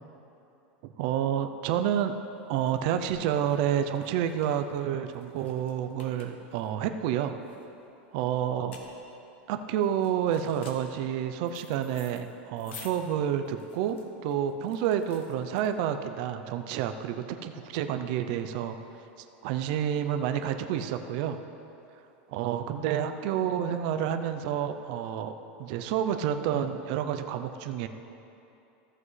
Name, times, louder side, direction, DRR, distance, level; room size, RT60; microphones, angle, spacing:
voice 1, 0.8-2.2 2.5-7.4 8.1-8.8 9.5-18.8 19.4-21.4 22.3-25.3 25.6-27.9, right 9 dB, 45° right, 7 dB, 0.5 m, -29 dB
sound 1, 1.7-16.1, left 6 dB, 85° left, 1.2 m, -53 dB
14.5 x 7.6 x 3.2 m, 2.8 s
supercardioid pair, 170°, 6 cm